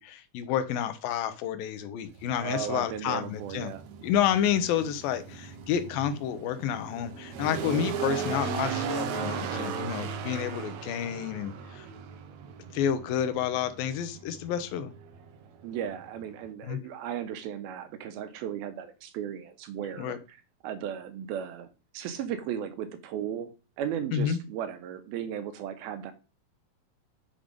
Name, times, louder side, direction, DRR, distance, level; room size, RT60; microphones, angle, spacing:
voice 1, 0.0-3.7 4.0-11.9 12.7-14.9 16.6-16.8 20.0-20.2 24.1-24.4, left 9 dB, 85° left, 11 dB, 2.5 m, -30 dB
sound 1, 2.1-16.5, right 6 dB, 70° right, 1.9 m, -37 dB
voice 2, 2.4-3.8 15.6-20.4 20.6-21.7 21.9-23.5 23.8-26.1, right 9 dB, 85° right, 9 dB, 2.9 m, -36 dB
7.2 x 5.2 x 5.2 m, 0.31 s
omnidirectional pair, 4.2 m